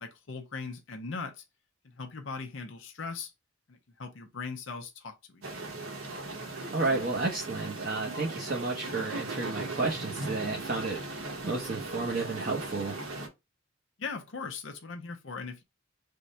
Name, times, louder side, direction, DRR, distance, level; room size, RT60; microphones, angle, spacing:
voice 1, 0.0-1.4 2.0-3.3 3.7-5.4 14.0-15.6, left 4 dB, 70° left, 0.6 m, -39 dB
sound 1, 5.4-13.3, right 2 dB, 85° right, 1.1 m, -38 dB
voice 2, 6.7-12.9, right 3 dB, 45° right, 0.8 m, -32 dB
3.6 x 2.2 x 4.1 m
head